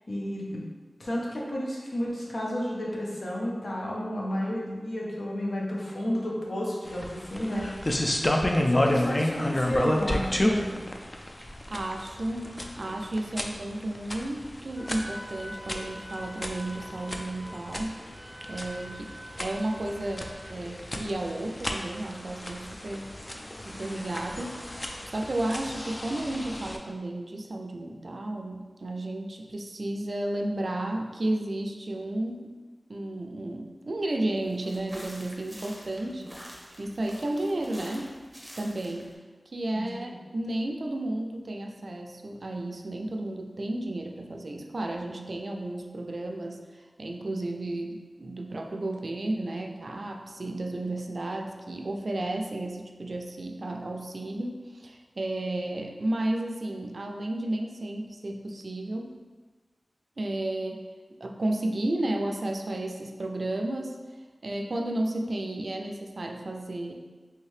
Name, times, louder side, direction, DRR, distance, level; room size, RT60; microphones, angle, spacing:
voice 1, 0.1-0.6 1.0-8.0 8.7-10.8 36.2-36.3 39.7-39.8, equal, 75° left, -4 dB, 0.8 m, -32 dB
sound 1, 6.9-26.8, left 1 dB, 30° left, 0.4 m, -31 dB
voice 2, 11.4-18.0 18.5-23.1 23.6-32.5 32.9-38.2 38.6-39.2 39.5-59.1 60.2-60.9 61.2-64.0 64.4-66.9, right 1 dB, 70° right, 3 dB, 0.3 m, -33 dB
Wind instrument woodwind instrument, 14.8-20.5, equal, 10° left, 1.2 m, -45 dB
sound 2, 34.4-39.1, equal, 10° right, 0.8 m, -47 dB
3.2 x 2.7 x 3.1 m, 1.4 s
cardioid pair, 45°, 0 cm